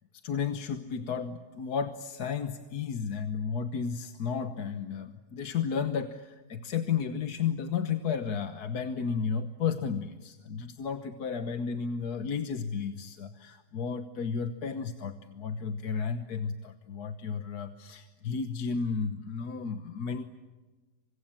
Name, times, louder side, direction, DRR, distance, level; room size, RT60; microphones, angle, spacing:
voice 1, 0.2-20.3, left 6 dB, 80° left, 8 dB, 1.7 m, -33 dB
29.0 x 25.5 x 7.3 m, 1.3 s
omnidirectional pair, 1.6 m